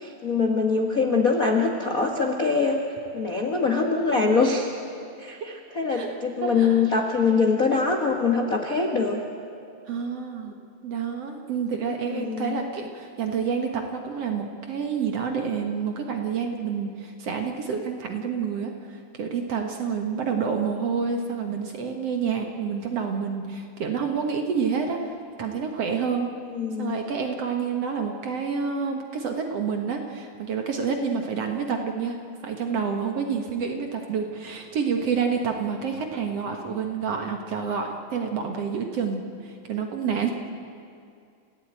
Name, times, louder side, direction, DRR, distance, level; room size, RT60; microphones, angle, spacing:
voice 1, 0.0-2.8 3.1-4.7 5.2-9.2 12.1-12.6 26.5-27.0, left 4 dB, 65° left, 2 dB, 0.8 m, -23 dB
voice 2, 6.4-6.8 9.9-10.5 10.8-25.1 25.4-26.3 26.8-32.2 32.4-40.3, right 6 dB, 55° right, 3 dB, 2.0 m, -28 dB
29.5 x 16.0 x 9.0 m, 2.4 s
omnidirectional pair, 4.3 m